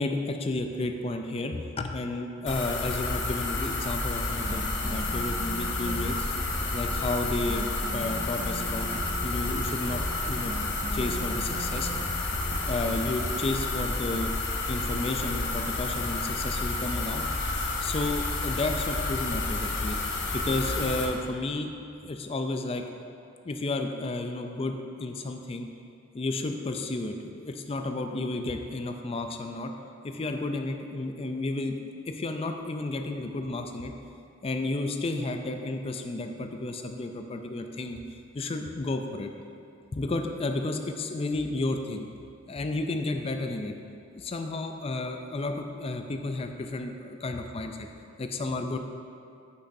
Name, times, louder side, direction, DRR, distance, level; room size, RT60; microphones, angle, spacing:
voice 1, 0.0-6.2 6.7-7.7 7.9-8.9 9.2-10.5 10.9-11.9 12.7-14.3 14.7-17.3 17.8-20.0 20.3-21.7 22.0-22.8 23.4-25.7 26.1-29.7 30.0-31.7 32.1-33.9 34.4-38.0 38.3-39.3 39.9-42.1 42.5-43.7 44.1-47.9 48.2-48.8, left 2 dB, 30° left, 5 dB, 0.4 m, -32 dB
sound 1, 2.5-21.0, left 2 dB, 60° left, 0.8 m, -30 dB
sound 2, 4.3-13.0, right 3 dB, 40° right, 0.4 m, -40 dB
8.4 x 6.2 x 2.7 m, 2.5 s
head